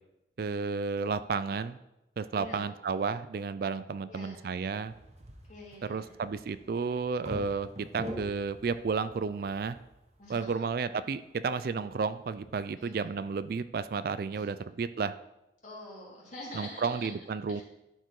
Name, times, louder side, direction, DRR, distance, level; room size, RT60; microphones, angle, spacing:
voice 1, 0.4-1.8 2.2-4.9 5.8-9.8 10.3-15.1 16.5-17.6, right 5 dB, 55° right, 13 dB, 0.3 m, -32 dB
voice 2, 2.3-2.7 4.1-4.4 5.5-6.1 10.2-10.7 12.8-13.0 14.3-14.6 15.6-17.1 17.5-17.6, left 1 dB, 40° left, -4 dB, 2.9 m, -46 dB
sound 1, 4.9-13.5, equal, 35° right, 1.1 m, -46 dB
11.5 x 4.6 x 4.7 m, 0.90 s
head